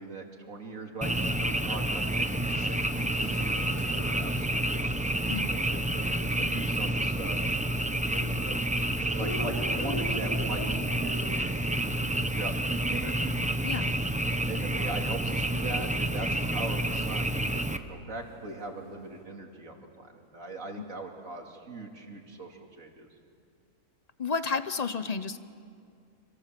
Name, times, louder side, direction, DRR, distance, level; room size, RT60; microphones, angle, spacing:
voice 1, 0.0-4.9 5.4-7.4 8.1-13.4 14.5-23.1, right 3 dB, 60° right, 2 dB, 3.0 m, -40 dB
Frog, 1.0-17.8, right 1 dB, 5° right, 0.6 m, -29 dB
sound 1, 1.7-19.2, left 1 dB, 75° left, 5.3 m, -46 dB
voice 2, 24.2-25.4, left 5 dB, 35° left, 12 dB, 0.6 m, -31 dB
27.0 x 26.5 x 7.6 m, 2.4 s
omnidirectional pair, 1.6 m